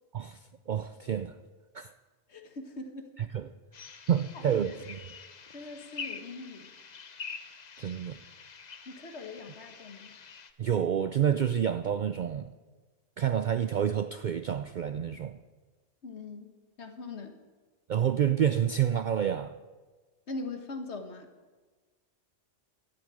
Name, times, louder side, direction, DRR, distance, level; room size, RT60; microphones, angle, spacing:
voice 1, 0.1-1.4 1.7-1.9 3.2-3.5 4.1-5.0 7.8-8.2 10.6-12.5 13.2-15.4 17.9-19.6, right 9 dB, 60° right, 0.5 m, -28 dB
voice 2, 2.3-3.1 4.3-4.7 5.5-6.7 8.9-10.1 16.0-16.5 16.8-17.4 20.3-21.3, left 3 dB, 60° left, 1.6 m, -41 dB
sound 1, 3.7-10.5, left 5 dB, 40° left, 0.8 m, -46 dB
12.0 x 9.4 x 8.9 m
omnidirectional pair, 1.3 m